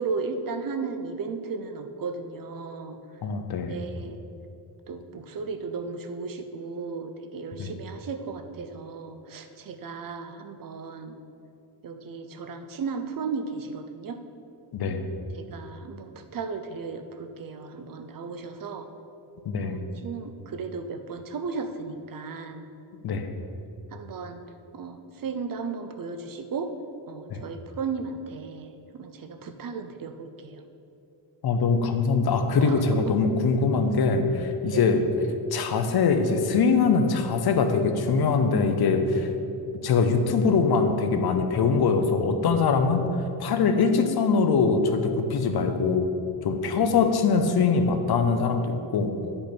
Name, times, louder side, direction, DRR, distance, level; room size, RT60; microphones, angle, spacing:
voice 1, 0.0-3.0 3.7-4.2 4.9-11.2 11.8-14.2 15.3-18.9 19.6-22.7 23.9-24.4 24.7-26.7 27.1-30.6 32.6-33.4 34.7-35.0 46.8-46.9, right 4 dB, 50° right, 8 dB, 0.6 m, -35 dB
voice 2, 3.2-3.8 7.6-7.7 14.7-15.0 19.5-19.8 23.0-23.3 27.3-27.4 31.4-35.0 35.5-39.3 39.8-43.0 43.4-46.1 46.4-49.1, left 4 dB, 55° left, 7 dB, 0.8 m, -23 dB
9.8 x 5.5 x 4.5 m, 2.7 s
cardioid pair, 115°, 45 cm